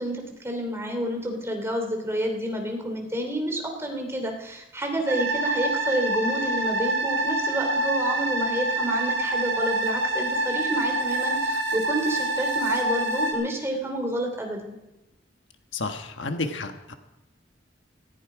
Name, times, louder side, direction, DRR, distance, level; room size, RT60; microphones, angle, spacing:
voice 1, 0.0-14.8, right 1 dB, 15° right, 3 dB, 2.8 m, -29 dB
sound 1, 5.1-13.3, right 2 dB, 70° right, 5.4 m, -26 dB
voice 2, 15.7-16.9, left 3 dB, 80° left, 6 dB, 1.4 m, -31 dB
19.0 x 15.0 x 4.9 m, 0.96 s
head